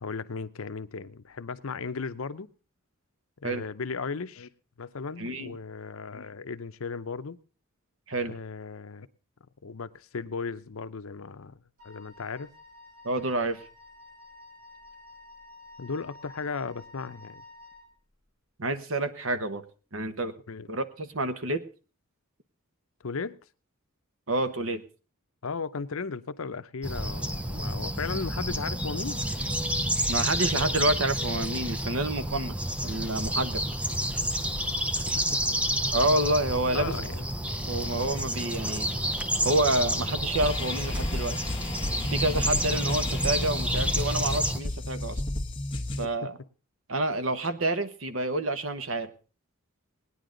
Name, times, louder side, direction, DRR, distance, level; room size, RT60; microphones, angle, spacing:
voice 1, 0.0-2.5 3.4-4.5 4.8-7.4 8.2-9.1 9.6-11.6 11.8-12.5 15.8-17.4 20.5-20.7 23.0-23.4 25.4-29.2 34.9-35.4 36.7-37.2 46.0-46.1, left 4 dB, 75° left, 0.7 m, -36 dB
voice 2, 5.2-5.6 8.1-8.3 13.0-13.6 18.6-19.6 19.9-20.3 20.7-21.6 24.3-24.8 30.1-32.6 32.8-33.6 35.9-36.9 37.7-38.9 39.4-41.4 42.1-45.2 46.0-46.3 46.9-49.1, right 2 dB, 65° right, 1.1 m, -28 dB
Wind instrument woodwind instrument, 11.8-17.9, left 2 dB, 45° right, 3.5 m, -51 dB
sound 1, 26.8-44.6, equal, 5° right, 0.7 m, -30 dB
sound 2, 40.4-46.1, left 1 dB, 25° left, 1.3 m, -32 dB
19.0 x 10.0 x 3.9 m
head